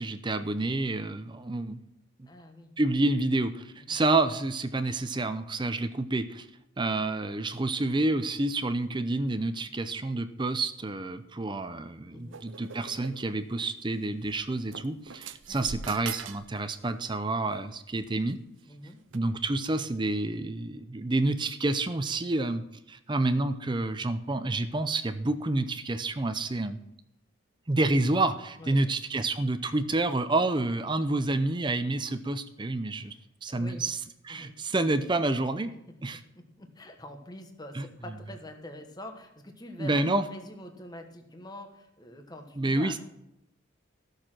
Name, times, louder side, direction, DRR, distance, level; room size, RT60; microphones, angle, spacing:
voice 1, 0.0-1.8 2.2-2.3 2.8-6.5 6.8-18.4 19.1-26.8 27.7-33.1 33.4-34.0 34.2-35.7 36.0-36.2 37.7-37.8 39.8-40.2 42.6-43.0, right 2 dB, 25° right, 10 dB, 0.5 m, -29 dB
voice 2, 2.3-2.7 3.9-4.0 12.1-12.4 15.5-15.7 18.6-19.0 28.6-28.9 33.0-33.2 33.5-33.9 34.3-34.5 36.1-43.0, left 1 dB, 20° left, 5 dB, 1.2 m, -45 dB
sound 1, 12.3-13.3 14.2-14.3 14.7-16.5 16.8-17.1 18.0-18.3 19.1-19.2, right 7 dB, 70° right, 0.7 m, -41 dB
14.5 x 6.6 x 6.1 m, 0.81 s
head